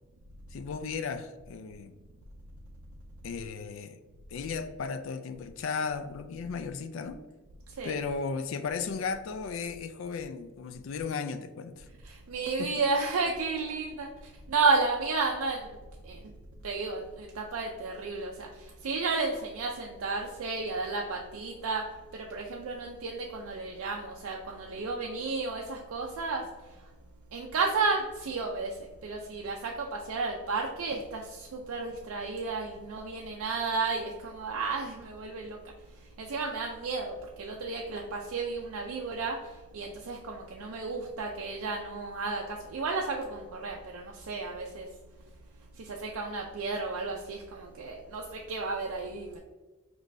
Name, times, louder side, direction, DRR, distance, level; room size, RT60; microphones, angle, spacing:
voice 1, 0.5-1.9 3.2-4.0 4.3-7.2 7.8-11.9 12.6-12.7, left 5 dB, 60° left, 10 dB, 0.3 m, -35 dB
voice 2, 12.0-14.1 14.5-15.6 16.0-16.2 16.6-21.9 22.1-26.5 27.3-35.6 36.2-44.9 45.8-49.4, right 4 dB, 70° right, 0 dB, 0.4 m, -32 dB
5.2 x 3.1 x 2.6 m, 1.2 s
head